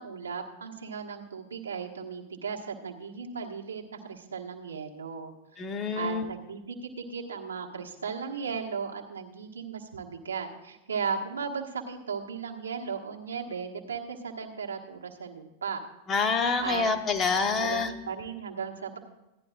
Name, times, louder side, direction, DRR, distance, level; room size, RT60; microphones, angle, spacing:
voice 1, 0.0-5.6 5.9-15.8 16.6-16.9 17.4-19.0, right 5 dB, 75° right, -1 dB, 1.4 m, -36 dB
voice 2, 5.6-6.3 16.1-17.9, left 4 dB, 25° left, 4 dB, 1.1 m, -27 dB
16.5 x 11.0 x 2.5 m, 0.95 s
figure-of-eight pair, 90°, 0 cm